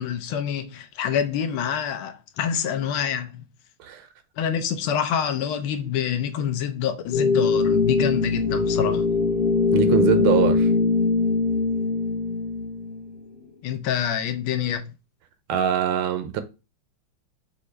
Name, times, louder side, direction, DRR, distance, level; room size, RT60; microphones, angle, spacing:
voice 1, 0.0-3.4 4.4-9.0 13.6-14.9, left 8 dB, 75° left, 1.4 m, -26 dB
sound 1, 7.1-13.2, left 4 dB, 35° left, 1.1 m, -22 dB
voice 2, 9.7-10.7 15.5-16.4, right 9 dB, 80° right, 1.4 m, -23 dB
5.7 x 2.7 x 3.2 m
omnidirectional pair, 2.4 m